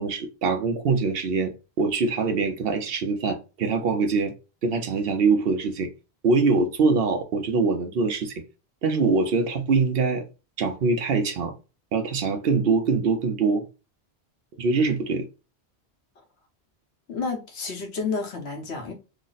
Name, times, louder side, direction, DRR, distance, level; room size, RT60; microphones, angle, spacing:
voice 1, 0.0-4.3 4.6-5.9 6.2-8.4 8.8-10.3 10.6-11.5 11.9-13.6 14.6-15.3, right 4 dB, 65° right, 0.8 m, -23 dB
voice 2, 17.1-18.9, left 4 dB, 75° left, 1.2 m, -30 dB
3.1 x 2.0 x 3.9 m
omnidirectional pair, 1.1 m